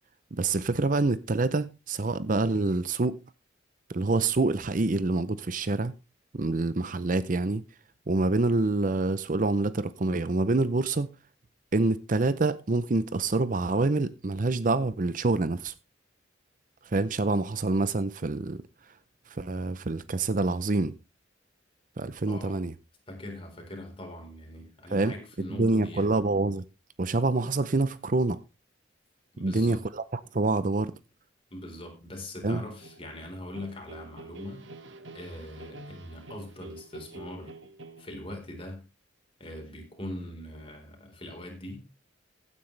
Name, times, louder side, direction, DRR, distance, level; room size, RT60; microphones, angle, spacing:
voice 1, 0.3-3.2 3.9-5.9 6.3-7.6 8.1-11.1 11.7-15.7 16.9-18.6 19.3-21.0 22.0-22.7 24.9-25.1 25.5-26.6 27.0-28.4 29.4-30.9 32.4-32.6, right 3 dB, 45° right, 0.6 m, -26 dB
voice 2, 22.3-22.6 23.1-26.1 29.3-29.8 31.5-34.7 35.1-37.5 38.0-38.8 39.4-41.8, left 1 dB, 30° left, 4.1 m, -41 dB
sound 1, 32.8-38.4, right 2 dB, 75° right, 1.6 m, -47 dB
16.0 x 9.5 x 3.3 m
head